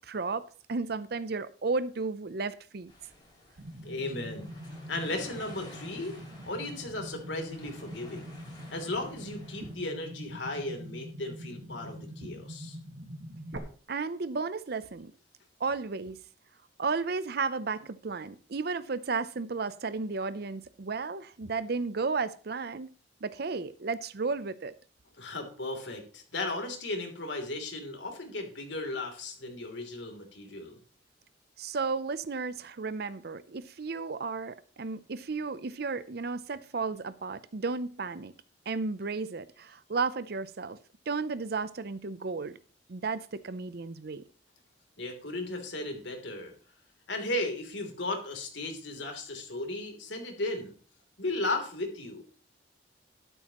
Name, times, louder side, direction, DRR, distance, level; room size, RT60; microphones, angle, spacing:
voice 1, 0.1-2.9 13.9-15.1 15.6-16.2 16.8-22.9 23.2-24.7 31.6-38.3 38.7-40.8 41.1-42.6 42.9-44.2, right 4 dB, 60° right, 0.6 m, -33 dB
sound 1, 2.9-9.7, left 1 dB, 25° left, 6.9 m, -53 dB
sound 2, 3.6-13.6, equal, 75° right, 1.7 m, -44 dB
voice 2, 3.8-4.5 4.9-6.2 6.4-8.3 8.7-12.8 25.2-30.8 45.0-46.5 47.1-50.7 51.2-52.2, left 2 dB, 90° left, 3.2 m, -35 dB
12.5 x 12.0 x 3.0 m
head